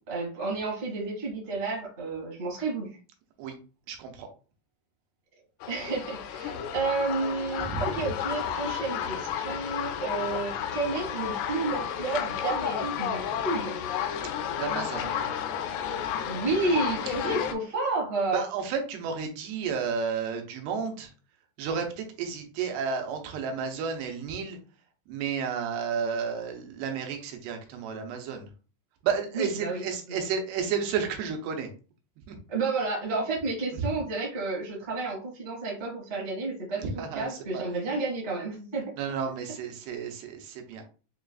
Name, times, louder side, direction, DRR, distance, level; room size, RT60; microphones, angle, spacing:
voice 1, 0.1-2.9 5.7-13.8 16.3-18.4 29.3-29.8 32.5-38.9, right 3 dB, 55° right, -3 dB, 0.6 m, -31 dB
voice 2, 3.9-4.3 7.6-7.8 14.2-14.3 14.6-15.1 18.3-21.1 21.6-24.6 25.1-28.5 29.0-31.7 32.3-32.4 33.9-34.0 36.8-37.6 39.0-40.9, right 6 dB, 90° right, 4 dB, 2.8 m, -32 dB
sound 1, 5.6-17.5, left 9 dB, 85° left, 2.6 m, -32 dB
6.7 x 2.3 x 2.4 m, 0.36 s
omnidirectional pair, 4.7 m